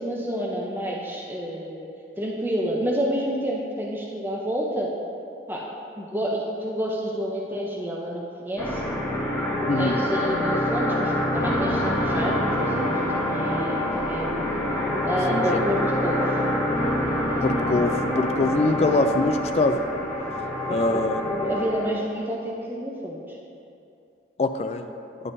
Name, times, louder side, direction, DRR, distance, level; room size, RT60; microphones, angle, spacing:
voice 1, 0.0-1.9 2.2-4.9 5.5-5.6 6.0-8.8 9.8-14.5 15.1-16.4 20.7-20.8 21.2-23.4, equal, 10° right, -3 dB, 0.6 m, -29 dB
sound 1, 8.6-21.9, left 1 dB, 15° left, 1.3 m, -26 dB
voice 2, 9.7-10.0 15.3-15.6 17.4-19.8 20.7-21.2 24.4-24.8, left 2 dB, 35° left, 7 dB, 0.3 m, -23 dB
11.0 x 5.5 x 2.7 m, 2.6 s
head